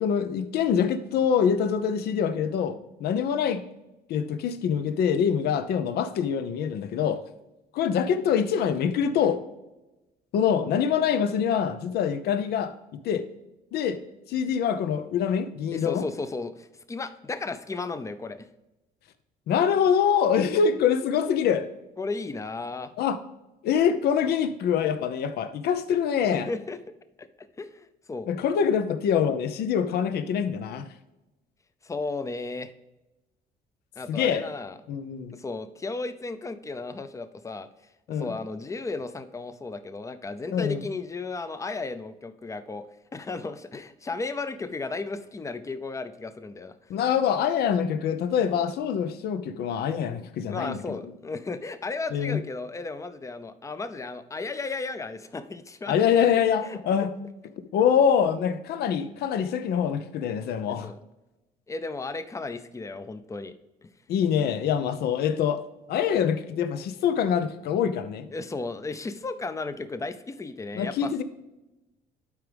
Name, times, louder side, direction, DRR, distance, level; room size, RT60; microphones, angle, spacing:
voice 1, 0.0-3.6 4.1-7.2 7.7-9.4 10.3-12.7 13.0-13.2 13.7-14.0 14.3-16.0 19.5-21.7 23.0-23.2 23.6-26.5 28.3-30.8 34.1-34.5 34.9-35.3 38.1-38.3 40.5-40.8 46.9-51.1 52.1-52.4 55.9-57.1 57.7-60.9 64.1-65.6 65.9-68.3 70.7-71.2, left 7 dB, 70° left, 0.8 m, -25 dB
voice 2, 15.7-18.5 22.0-22.9 26.3-26.8 27.2-27.3 27.6-28.3 31.8-32.7 34.0-34.8 35.3-37.7 38.1-42.9 43.1-46.7 50.5-55.9 56.6-56.8 60.7-61.0 61.7-63.5 68.3-71.1, left 3 dB, 20° left, 0.6 m, -34 dB
11.5 x 4.8 x 3.5 m
cardioid pair, 110°, 17 cm